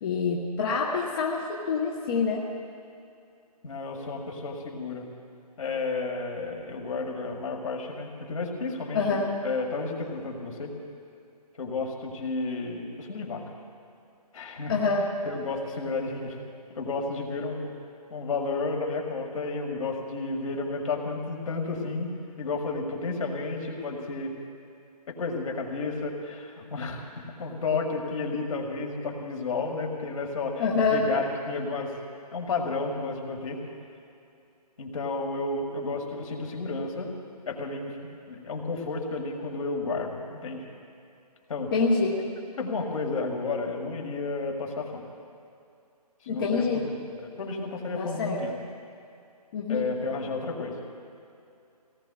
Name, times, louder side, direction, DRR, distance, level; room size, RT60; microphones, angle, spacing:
voice 1, 0.0-2.4 8.9-9.3 14.7-15.1 30.6-31.1 41.7-42.2 46.3-46.8 48.0-48.4 49.5-49.9, left 4 dB, 35° left, -3 dB, 1.2 m, -26 dB
voice 2, 3.6-5.1 5.6-10.7 11.6-13.4 14.3-14.7 15.2-16.4 16.8-17.7 18.1-22.1 22.4-24.3 25.1-32.0 32.3-33.6 34.8-37.1 37.5-38.0 38.3-40.6 41.5-41.7 42.6-45.0 46.2-48.5 49.7-50.8, left 3 dB, 55° left, 1 dB, 2.2 m, -32 dB
24.5 x 18.0 x 2.4 m, 2.6 s
figure-of-eight pair, 150°, 21 cm